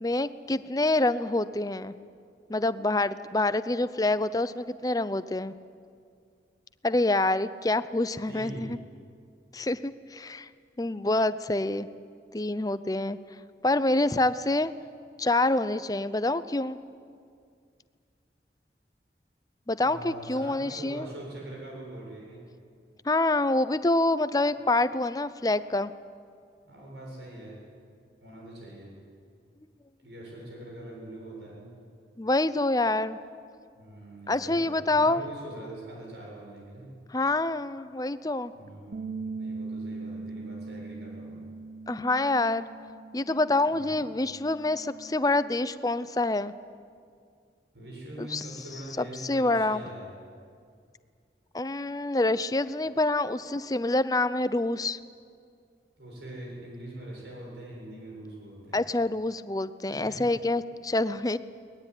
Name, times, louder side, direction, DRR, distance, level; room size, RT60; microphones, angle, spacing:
voice 1, 0.0-1.9 2.5-5.5 6.8-8.8 9.5-10.5 10.8-11.9 12.3-13.2 13.6-14.7 15.2-16.8 19.7-21.1 23.0-25.9 32.2-33.2 34.3-35.2 37.1-38.5 41.9-42.6 43.1-46.5 48.2-48.5 49.0-49.8 51.5-55.0 58.7-61.4, left 2 dB, 20° left, 14 dB, 0.6 m, -26 dB
voice 2, 8.3-8.7 19.8-22.4 26.6-27.6 28.2-28.9 30.0-31.7 33.7-36.8 38.5-41.4 43.7-44.0 47.7-50.1 56.0-58.8 59.9-60.2, right 1 dB, 80° right, -2 dB, 7.4 m, -43 dB
Bass guitar, 38.9-45.2, right 3 dB, 55° right, 1.0 m, -40 dB
23.5 x 20.0 x 9.9 m, 2.2 s
head